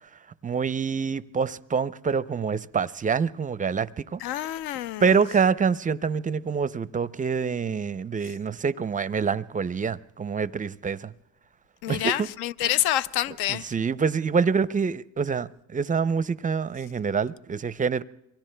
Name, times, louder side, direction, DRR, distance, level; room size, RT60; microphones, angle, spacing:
voice 1, 0.4-4.5 5.0-11.1 11.9-12.3 12.6-12.7 13.5-18.0, right 6 dB, 20° right, 0.5 m, -26 dB
voice 2, 4.2-5.2 11.8-13.7, left 13 dB, 75° left, 0.6 m, -27 dB
27.5 x 23.5 x 2.2 m
supercardioid pair, 80°, 38 cm